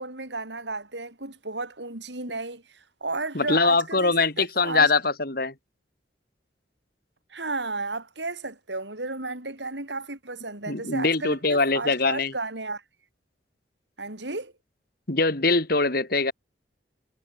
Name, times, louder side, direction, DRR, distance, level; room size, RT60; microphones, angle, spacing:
voice 1, 0.0-4.9 7.3-12.8 14.0-14.5, right 3 dB, 75° right, 6.4 m, -33 dB
voice 2, 3.3-5.5 10.7-12.3 15.1-16.3, left 3 dB, 55° left, 3.2 m, -23 dB
head